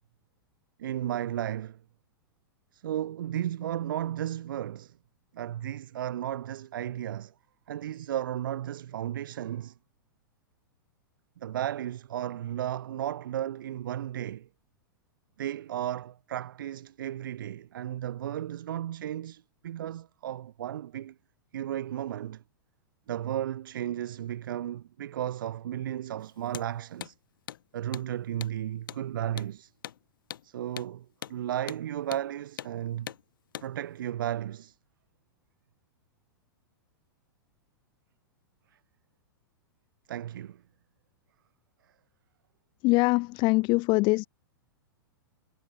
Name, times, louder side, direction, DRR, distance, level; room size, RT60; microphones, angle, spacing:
voice 1, 0.8-1.8 2.7-5.0 5.3-7.3 7.7-9.8 11.4-14.5 15.4-21.1 21.5-22.4 23.1-27.1 27.7-29.7 30.4-33.1 33.6-34.8 40.1-40.6, right 11 dB, 65° right, 0.6 m, -34 dB
Hammer, 26.5-26.7 27.0-27.1 27.5-27.6 27.9-28.1 28.4-28.6 28.9-29.0 29.4-29.5 29.8-30.0 30.3-30.5 30.8-30.9 31.2-31.4 31.7-31.8 32.1-32.3 32.6-32.7 33.1-33.2 33.5-33.7, left 11 dB, 65° left, 0.5 m, -40 dB
voice 2, 42.8-44.3, left 25 dB, 40° left, 1.6 m, -23 dB
figure-of-eight pair, 100°, 12 cm